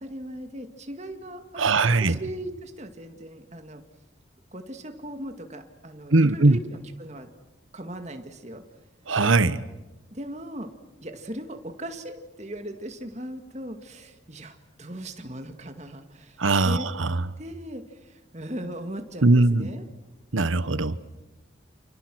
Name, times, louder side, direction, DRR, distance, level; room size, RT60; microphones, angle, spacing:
voice 1, 0.0-3.8 4.5-7.3 7.7-8.6 10.1-10.7 11.0-16.9 17.4-19.8, right 1 dB, 35° right, 6 dB, 2.1 m, -38 dB
voice 2, 1.6-2.2 6.1-6.6 9.1-9.6 16.4-17.2 19.2-19.7 20.3-21.0, right 2 dB, 85° right, 15 dB, 1.1 m, -20 dB
30.0 x 28.5 x 6.3 m, 1.1 s
head